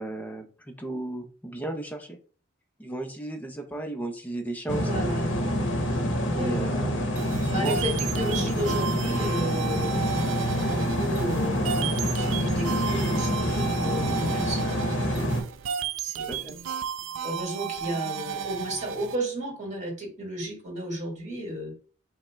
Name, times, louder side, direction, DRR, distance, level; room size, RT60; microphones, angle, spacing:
voice 1, 0.0-2.2 2.8-4.9 6.3-7.2 7.4-7.8 16.3-16.6, right 2 dB, 10° left, 4 dB, 0.6 m, -35 dB
sound 1, 4.7-15.4, equal, 65° left, 0.8 m, -27 dB
voice 2, 4.8-5.3 6.3-6.7 7.5-10.4 10.7-14.9 16.0-16.5 17.2-21.8, right 1 dB, 35° right, 0 dB, 1.6 m, -33 dB
sound 2, 7.2-19.2, right 8 dB, 80° right, 0.3 m, -34 dB
5.3 x 2.1 x 3.4 m, 0.39 s
head